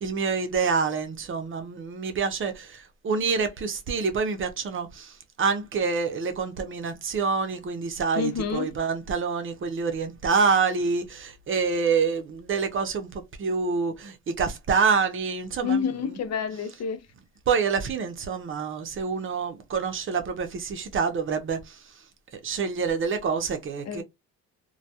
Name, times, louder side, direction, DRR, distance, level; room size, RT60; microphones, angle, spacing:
voice 1, 0.0-16.2 17.5-21.8 22.3-24.0, right 5 dB, 45° right, 0.6 m, -27 dB
voice 2, 8.2-8.7 15.6-17.0 23.9-24.0, left 6 dB, 60° left, 0.7 m, -28 dB
2.2 x 2.2 x 2.7 m
cardioid pair, 90°, 30 cm